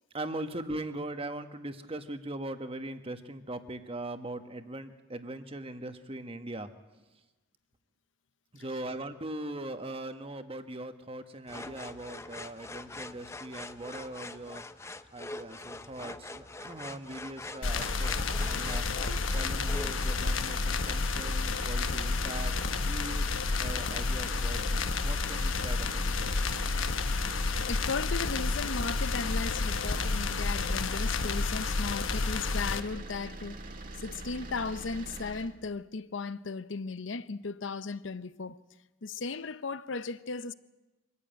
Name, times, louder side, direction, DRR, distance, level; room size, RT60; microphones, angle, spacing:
voice 1, 0.1-6.7 8.5-14.6 15.1-18.8 19.3-26.4, right 1 dB, 30° right, 1.3 m, -40 dB
sound 1, 11.5-20.2, left 2 dB, 15° left, 0.7 m, -44 dB
sound 2, 17.6-32.8, left 4 dB, 90° left, 1.1 m, -30 dB
sound 3, 17.6-35.5, right 2 dB, 45° right, 1.8 m, -43 dB
voice 2, 27.7-33.6 34.0-38.6 39.0-40.5, left 4 dB, 70° left, 0.7 m, -36 dB
24.5 x 14.0 x 9.1 m
head